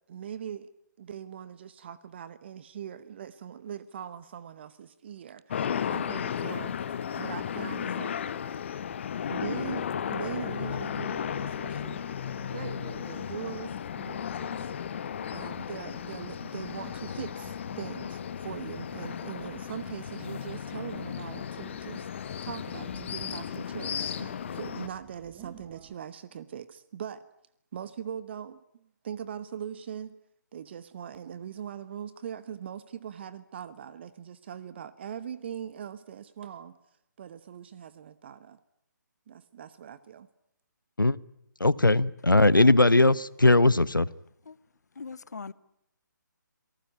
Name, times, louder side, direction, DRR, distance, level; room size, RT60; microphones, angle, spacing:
voice 1, 0.1-0.7 1.0-6.8 7.2-8.2 9.3-12.0 12.5-14.7 14.9-15.1 15.3-22.1 22.4-27.2 27.7-30.1 30.5-36.8 37.2-38.6 39.3-40.3, right 9 dB, 35° right, 1.0 m, -41 dB
sound 1, 5.5-24.9, left 8 dB, 35° left, 1.3 m, -35 dB
sound 2, 9.4-26.0, right 8 dB, 15° right, 1.9 m, -55 dB
voice 2, 41.6-44.1, left 2 dB, 85° left, 0.9 m, -20 dB
voice 3, 45.0-45.5, left 5 dB, 55° left, 1.1 m, -40 dB
27.0 x 19.0 x 9.7 m
figure-of-eight pair, 145°, 11 cm